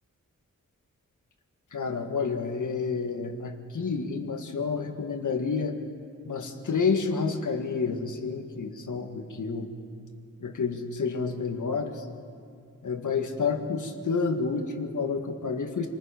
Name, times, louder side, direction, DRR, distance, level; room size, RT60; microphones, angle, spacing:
voice 1, 1.7-5.7 6.3-9.7 10.4-12.1 12.8-15.9, left 5 dB, 70° left, 5 dB, 1.8 m, -29 dB
27.0 x 19.5 x 5.2 m, 2.3 s
wide cardioid pair, 95°, 32 cm